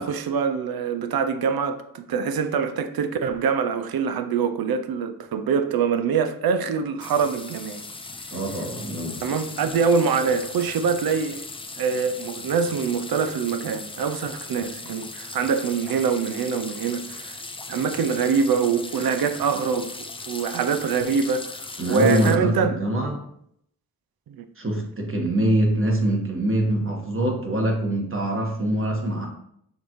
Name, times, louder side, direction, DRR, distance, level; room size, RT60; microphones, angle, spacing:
voice 1, 0.0-7.8 9.2-11.4 11.8-17.3 17.7-19.9 20.3-22.7 24.3-24.5, right 6 dB, 85° right, 0.5 m, -24 dB
sound 1, 7.0-22.4, left 3 dB, 15° left, 0.3 m, -38 dB
voice 2, 8.3-9.2 21.8-23.2 24.6-29.3, right 1 dB, 35° right, 1.3 m, -24 dB
6.7 x 2.7 x 3.0 m
wide cardioid pair, 80°, 35 cm